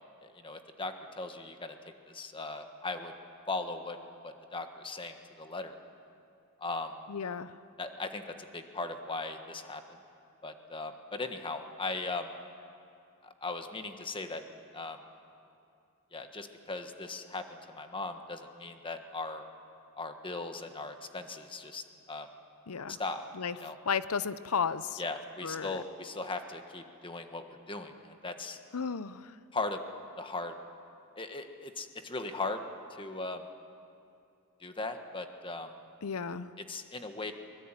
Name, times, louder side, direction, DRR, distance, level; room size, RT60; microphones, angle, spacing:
voice 1, 0.2-1.8 2.1-3.1 3.5-4.0 4.2-5.8 6.6-7.0 7.8-9.8 10.4-12.3 13.2-14.4 14.7-15.0 16.1-19.4 19.9-22.3 22.9-23.2 23.6-23.7 25.0-28.6 29.5-29.8 30.2-30.5 31.2-32.6 32.9-33.5 34.6-35.7 36.7-37.3, left 3 dB, 25° left, 6 dB, 1.4 m, -38 dB
voice 2, 7.1-7.6 22.7-23.0 23.3-23.6 23.8-25.0 25.4-25.8 28.7-29.4 36.0-36.5, left 6 dB, 80° left, 15 dB, 0.7 m, -33 dB
23.5 x 21.0 x 9.0 m, 2.5 s
head